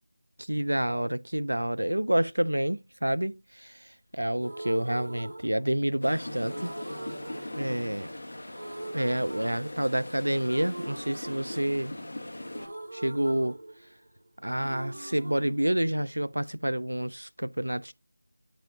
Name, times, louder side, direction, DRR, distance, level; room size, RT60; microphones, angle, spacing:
voice 1, 0.4-3.8 4.1-6.7 7.5-8.1 8.9-11.9 12.9-13.6 14.4-17.9, right 1 dB, 90° right, 0.4 m, -28 dB
sound 1, 4.4-6.0 6.5-8.2 8.5-10.1 10.5-14.2 14.5-16.5, right 1 dB, 60° right, 2.9 m, -43 dB
sound 2, 6.0-12.7, left 1 dB, 65° left, 1.8 m, -40 dB
8.4 x 6.1 x 2.7 m
figure-of-eight pair, 170°, 0 cm